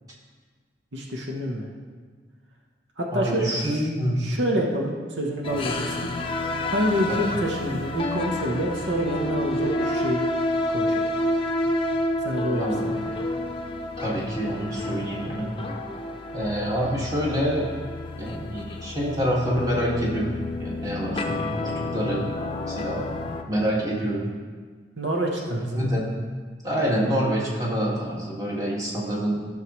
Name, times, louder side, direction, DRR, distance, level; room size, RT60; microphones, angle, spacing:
voice 1, 0.9-1.7 3.0-3.9 4.2-6.1 6.7-10.2 10.7-11.1 12.2-12.7 25.0-25.9, equal, 80° right, 0 dB, 1.1 m, -27 dB
voice 2, 3.1-4.2 7.1-7.2 12.6-13.1 14.0-15.5 16.3-17.6 18.1-20.3 20.6-22.2 22.7-23.1 23.5-24.3 25.5-26.1 26.6-29.4, equal, 20° right, -5 dB, 2.0 m, -26 dB
sound 1, 5.4-23.4, left 1 dB, 30° left, 0.7 m, -29 dB
14.5 x 6.5 x 3.1 m, 1.5 s
head